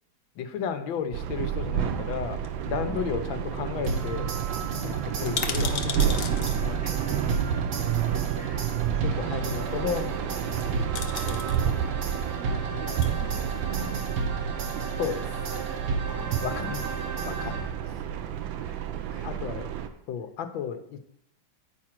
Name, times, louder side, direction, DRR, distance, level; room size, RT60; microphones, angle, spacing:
voice 1, 0.4-4.3 4.8-7.4 8.5-10.3 11.3-11.8 12.7-12.8 15.0-15.2 16.4-16.9 17.2-17.7 19.2-19.7 20.1-21.0, left 7 dB, 90° left, 8 dB, 1.5 m, -34 dB
sound 1, 1.1-19.9, right 9 dB, 85° right, 1.4 m, -30 dB
sound 2, 2.4-3.2 3.5-3.6 3.8-4.0 4.3-4.4 5.1-6.6 7.7-7.8 10.4-10.6 10.9-11.6 12.7-13.1 13.8-14.5 14.7-14.8, left 7 dB, 70° left, 1.2 m, -35 dB
sound 3, 3.9-18.0, right 3 dB, 70° right, 1.6 m, -34 dB
voice 2, 4.5-5.0 6.8-9.5 11.1-11.4 12.2-14.3 14.6-16.6 18.6-19.5 19.7-19.9, right 3 dB, 45° right, 0 dB, 0.7 m, -45 dB
9.3 x 4.9 x 4.4 m, 0.74 s
omnidirectional pair, 2.1 m